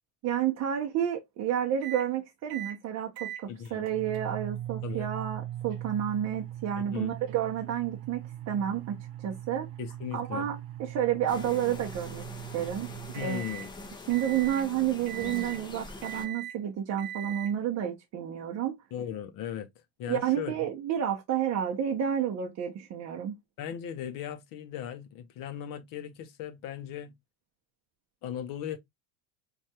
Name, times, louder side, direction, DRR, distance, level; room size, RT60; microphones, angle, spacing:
voice 1, 0.2-9.7 10.1-12.2 12.5-12.9 13.2-13.4 14.1-18.8 20.1-23.4, right 10 dB, 40° right, 0.6 m, -30 dB
sound 1, 1.8-2.1 2.5-2.8 3.2-13.7 14.1-14.7 15.1-15.6 16.0-16.6 17.0-17.5, right 12 dB, 85° right, 0.7 m, -40 dB
voice 2, 3.5-3.9 4.8-5.1 6.8-7.1 9.8-10.5 13.1-13.7 18.9-19.7 20.0-20.7 23.6-27.1 28.2-28.8, left 9 dB, 55° left, 0.6 m, -37 dB
sound 2, 11.3-16.3, left 2 dB, 10° left, 0.4 m, -44 dB
3.3 x 2.3 x 2.7 m
cardioid pair, 130°, 41 cm